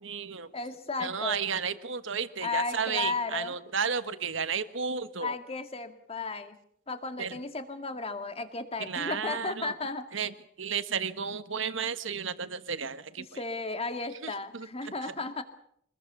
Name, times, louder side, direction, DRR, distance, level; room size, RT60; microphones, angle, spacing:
voice 1, 0.0-0.5 1.0-5.3 7.2-7.4 8.8-9.7 10.1-13.3 14.2-14.9, right 6 dB, 65° right, 12 dB, 1.4 m, -33 dB
voice 2, 0.5-1.4 2.4-3.6 5.2-6.6 6.9-10.1 13.2-15.4, left 3 dB, 30° left, 8 dB, 2.1 m, -34 dB
24.5 x 20.5 x 7.0 m, 0.67 s
head